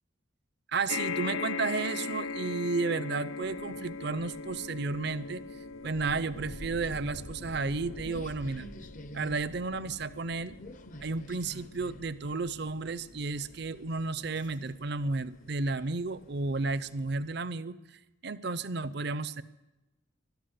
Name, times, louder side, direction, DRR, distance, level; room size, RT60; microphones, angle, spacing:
voice 1, 0.7-5.4 5.8-8.7 9.1-10.5 11.0-17.8 18.2-19.4, right 3 dB, 55° right, 16 dB, 0.6 m, -32 dB
sound 1, 0.9-15.4 16.2-16.3 16.5-16.6, left 4 dB, 85° left, 0.6 m, -41 dB
sound 2, 3.4-17.4, left 1 dB, 40° left, 0.7 m, -49 dB
13.0 x 12.0 x 8.2 m, 1.0 s
head